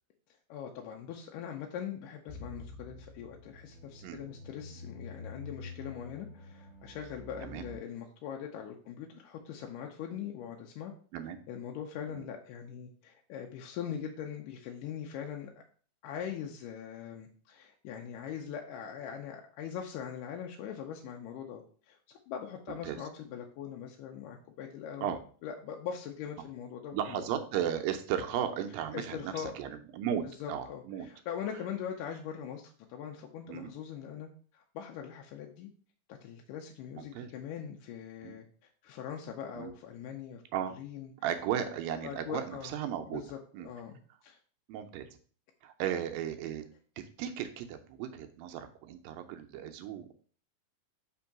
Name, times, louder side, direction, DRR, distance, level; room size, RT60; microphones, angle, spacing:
voice 1, 0.5-10.9 11.5-15.5 16.0-27.2 28.9-29.5 30.4-34.3 34.5-35.7 36.1-38.4 38.8-40.4 40.8-41.1 42.0-42.7 43.1-44.4, left 8 dB, 80° left, 2 dB, 2.0 m, -41 dB
sound 1, 2.3-7.8, left 3 dB, 25° left, 2.5 m, -47 dB
voice 2, 26.9-31.1 33.5-33.7 37.0-37.3 38.2-38.4 39.6-39.7 40.5-40.7 41.2-43.2 43.5-43.7 44.7-45.1 45.6-46.6 47.0-50.1, right 9 dB, 80° right, 7 dB, 2.2 m, -35 dB
5.2 x 3.7 x 5.8 m, 0.43 s
omnidirectional pair, 4.3 m